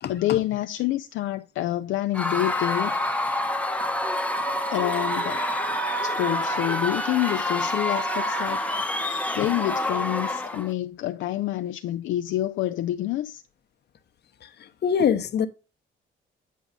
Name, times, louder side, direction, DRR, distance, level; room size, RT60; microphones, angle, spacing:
voice 1, 0.1-2.9 4.7-5.5 6.0-13.4, left 14 dB, 80° left, 0.4 m, -28 dB
Screaming / Cheering / Crowd, 2.1-10.7, left 1 dB, 5° left, 0.9 m, -27 dB
voice 2, 14.8-15.5, left 7 dB, 55° left, 0.8 m, -22 dB
9.2 x 4.6 x 3.9 m
cardioid pair, 90°, 20 cm